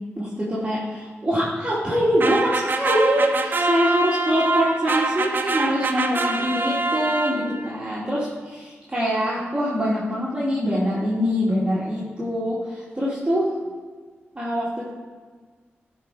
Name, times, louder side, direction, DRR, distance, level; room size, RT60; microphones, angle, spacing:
voice 1, 0.2-13.5 14.3-14.9, equal, 25° right, -8 dB, 2.7 m, -24 dB
sound 1, 2.2-7.7, right 3 dB, 50° right, 0.7 m, -25 dB
11.0 x 4.6 x 5.1 m, 1.5 s
cardioid pair, 50°, 4 cm